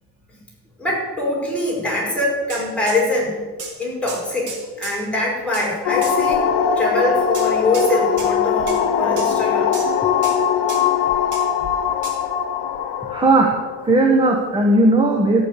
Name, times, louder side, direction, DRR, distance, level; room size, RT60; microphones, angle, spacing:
voice 1, 0.8-3.4 3.8-4.5 4.8-6.5 6.8-9.7, left 2 dB, 5° left, -5 dB, 5.7 m, -23 dB
sound 1, 2.5-3.0 3.6-3.8 4.1-5.0 5.5-5.7 6.0-6.2 7.3-7.9 8.2-8.3 8.7-8.8 9.2-9.4 9.7-10.0 10.2-10.4 10.7-10.9 11.3-11.5 12.0-12.2, right 4 dB, 50° right, 4.1 m, -33 dB
sound 2, 5.9-14.0, left 7 dB, 75° left, 1.2 m, -20 dB
voice 2, 13.0-13.5 13.8-15.4, right 2 dB, 15° right, 1 dB, 1.4 m, -16 dB
14.0 x 8.6 x 8.4 m, 1.4 s
cardioid pair, 155°, 39 cm